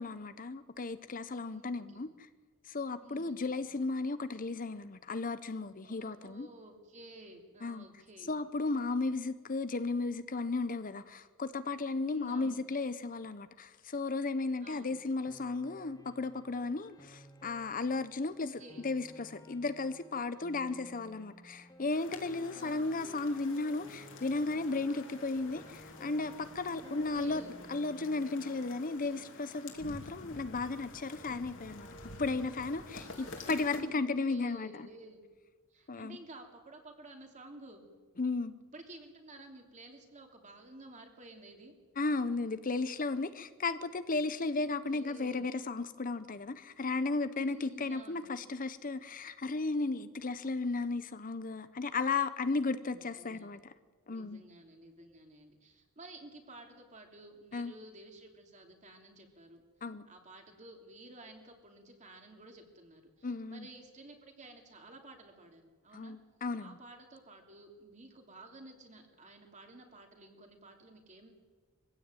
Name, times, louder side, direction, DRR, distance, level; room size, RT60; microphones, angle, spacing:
voice 1, 0.0-2.3 2.6-6.5 7.6-7.8 8.3-27.4 27.7-31.9 32.2-34.9 35.9-36.2 38.2-38.5 42.0-53.7 54.1-54.4 57.5-57.7 59.8-60.0 63.2-63.7 65.9-66.8, left 3 dB, 40° left, 12 dB, 0.8 m, -35 dB
voice 2, 1.5-2.1 3.0-3.6 5.8-8.3 12.0-12.6 14.6-15.0 18.3-18.9 22.5-22.9 26.8-27.5 32.8-35.2 35.7-37.8 38.7-41.7 44.5-45.4 47.3-48.3 52.9-53.6 54.0-59.6 60.1-66.2 66.6-71.3, right 2 dB, 35° right, 3 dB, 3.0 m, -53 dB
Piano, 15.3-29.0, left 1 dB, 15° left, 1.5 m, -56 dB
sound 1, 21.9-33.8, left 3 dB, 60° left, 2.9 m, -50 dB
22.5 x 16.0 x 9.1 m, 1.4 s
head